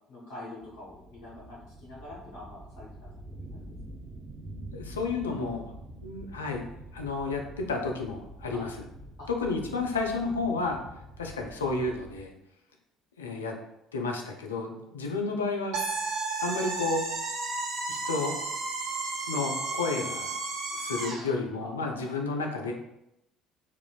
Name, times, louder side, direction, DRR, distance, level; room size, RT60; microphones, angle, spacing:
voice 1, 0.1-3.1 3.5-3.6 8.5-8.6 9.2-9.5 21.6-21.7 22.0-22.2, left 1 dB, 60° left, -6 dB, 0.8 m, -45 dB
sound 1, 0.6-12.2, right 1 dB, 30° right, 0.4 m, -46 dB
voice 2, 4.7-5.7 6.0-6.6 6.9-8.7 9.4-10.8 11.2-12.3 13.2-13.5 13.9-15.9 16.4-17.1 17.9-18.4 19.3-20.3 20.8-22.7, left 3 dB, 80° left, 2 dB, 0.3 m, -31 dB
sound 2, 15.7-21.3, right 3 dB, 60° right, 0.8 m, -33 dB
3.0 x 2.3 x 2.2 m, 0.84 s
figure-of-eight pair, 55°, 0 cm